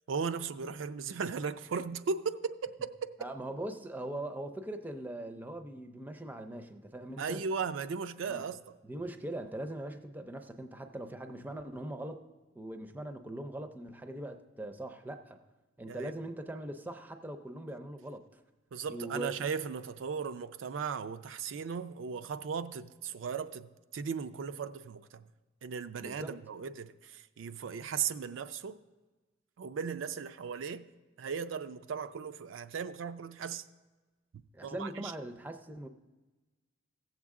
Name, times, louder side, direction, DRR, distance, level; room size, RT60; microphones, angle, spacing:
voice 1, 0.1-3.3 7.2-8.6 15.9-16.1 18.7-25.2 25.6-28.8 29.6-30.9 31.2-33.6 34.6-35.1, right 6 dB, 80° right, 0.4 m, -37 dB
voice 2, 3.2-7.4 8.3-8.4 8.8-12.2 12.5-15.4 15.8-18.4 18.9-19.3 26.0-26.4 34.5-35.9, right 1 dB, 10° right, 0.5 m, -41 dB
16.5 x 7.3 x 3.6 m
head